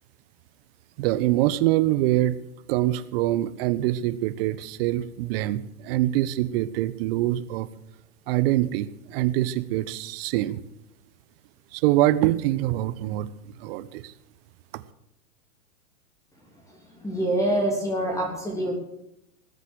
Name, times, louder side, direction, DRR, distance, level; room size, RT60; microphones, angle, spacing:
voice 1, 1.0-2.4 2.7-7.7 8.3-10.6 11.7-14.1, right 15 dB, 40° right, 15 dB, 1.1 m, -24 dB
voice 2, 17.0-18.7, right 1 dB, 5° left, -1 dB, 3.3 m, -25 dB
20.0 x 8.2 x 6.4 m, 0.83 s
hypercardioid pair, 120°, 45 cm